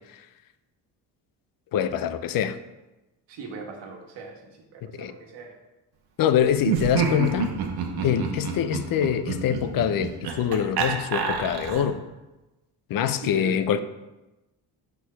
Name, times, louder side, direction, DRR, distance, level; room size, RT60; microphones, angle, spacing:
voice 1, 1.7-2.6 5.0-5.1 6.2-7.5 8.0-12.0 12.9-13.8, left 9 dB, 55° left, 0.5 m, -24 dB
voice 2, 3.3-4.4 4.7-5.5 13.2-13.5, right 4 dB, 85° right, 1.5 m, -39 dB
Laughter, 6.6-12.0, right 5 dB, 65° right, 1.0 m, -29 dB
6.4 x 4.6 x 5.6 m
cardioid pair, 155°, 42 cm